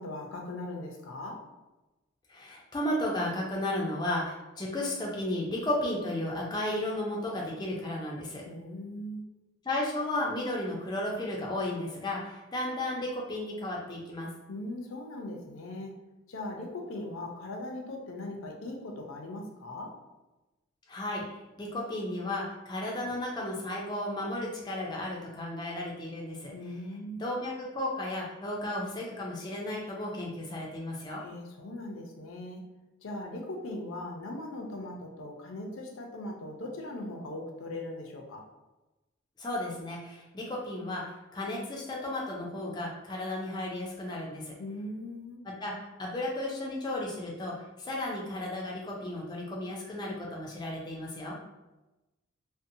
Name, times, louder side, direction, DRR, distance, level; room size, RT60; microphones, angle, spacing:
voice 1, 0.0-1.4 8.4-9.3 14.5-16.0 16.3-20.0 26.5-27.2 31.2-32.6 33.0-38.4 44.6-45.4 51.3-51.4, left 1 dB, 80° left, 1 dB, 0.5 m, -39 dB
voice 2, 2.3-8.4 9.6-14.3 20.9-21.2 21.6-26.5 27.2-31.2 39.4-44.5 45.4-45.7 46.0-51.3, left 1 dB, 20° left, -3 dB, 0.3 m, -34 dB
2.6 x 2.0 x 2.6 m, 1.0 s
head